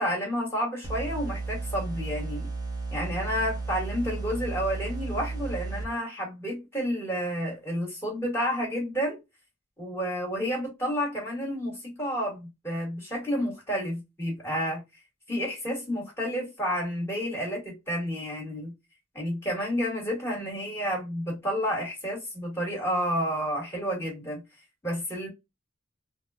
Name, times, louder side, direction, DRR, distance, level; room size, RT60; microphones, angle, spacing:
voice 1, 0.0-2.5 2.9-9.2 9.8-14.8 15.3-18.7 19.1-24.4 24.8-25.3, equal, 15° left, 1.8 m, -30 dB
sound 1, 0.8-5.8, right 3 dB, 20° right, 0.9 m, -34 dB
3.8 x 2.3 x 2.3 m
head